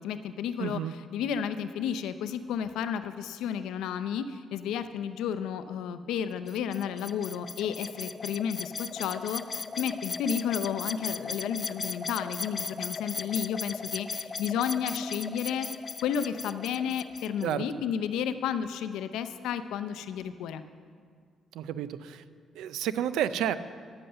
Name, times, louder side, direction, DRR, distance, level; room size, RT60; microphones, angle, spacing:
voice 1, 0.0-15.7 16.0-20.6, left 8 dB, 90° left, 11 dB, 0.5 m, -32 dB
voice 2, 0.6-0.9 17.4-17.6 21.5-22.2 22.5-23.5, right 10 dB, 85° right, 14 dB, 0.4 m, -30 dB
sound 1, 6.5-17.5, left 4 dB, 35° left, 0.4 m, -37 dB
9.6 x 7.9 x 6.7 m, 2.1 s
cardioid pair, 90°, 0 cm